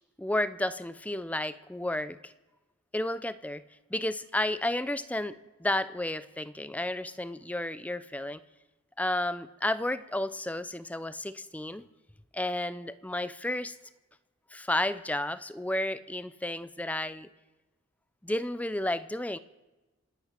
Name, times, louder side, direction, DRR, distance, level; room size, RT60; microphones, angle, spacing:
voice 1, 0.2-2.3 2.9-3.6 3.9-8.4 9.0-11.9 12.3-13.8 14.5-17.3 18.2-19.4, left 1 dB, 5° left, 14 dB, 0.5 m, -32 dB
27.0 x 9.0 x 5.9 m, 1.1 s
head